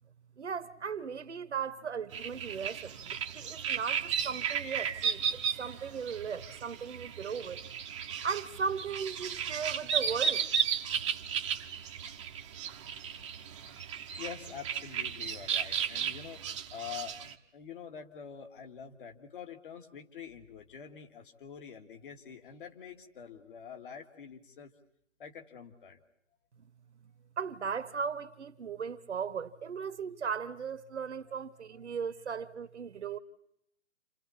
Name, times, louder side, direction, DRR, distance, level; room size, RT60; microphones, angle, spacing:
voice 1, 0.4-7.6 8.2-10.4 26.6-26.7 27.4-33.2, right 6 dB, 60° right, 1.3 m, -37 dB
sound 1, 2.1-17.3, right 7 dB, 25° right, 1.0 m, -35 dB
voice 2, 14.2-24.7 25.2-26.0 27.2-27.3, left 7 dB, 40° left, 2.2 m, -46 dB
29.5 x 28.0 x 4.3 m
figure-of-eight pair, 150°, 40 cm